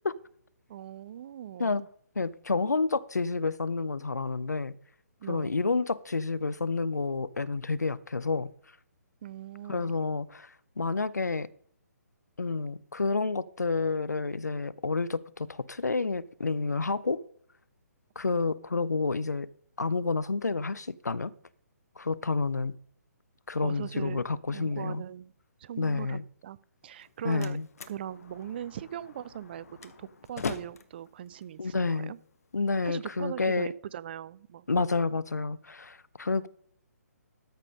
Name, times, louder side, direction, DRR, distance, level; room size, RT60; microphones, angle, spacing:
voice 1, 0.7-1.9 5.2-5.5 9.2-9.9 23.6-24.2 24.5-25.3 25.6-26.6 26.8-27.6 27.9-32.2 32.8-34.8, right 10 dB, 35° right, 0.4 m, -40 dB
voice 2, 2.2-4.8 5.3-8.5 9.7-11.5 12.4-17.2 18.2-19.5 19.8-21.3 22.0-22.7 23.5-25.0 25.8-26.2 27.2-27.7 31.6-32.1 32.5-33.7 34.7-36.5, left 4 dB, 80° left, 0.7 m, -29 dB
Slam, 26.8-32.8, left 5 dB, 60° left, 1.1 m, -42 dB
13.5 x 5.2 x 5.3 m
figure-of-eight pair, 135°, 9 cm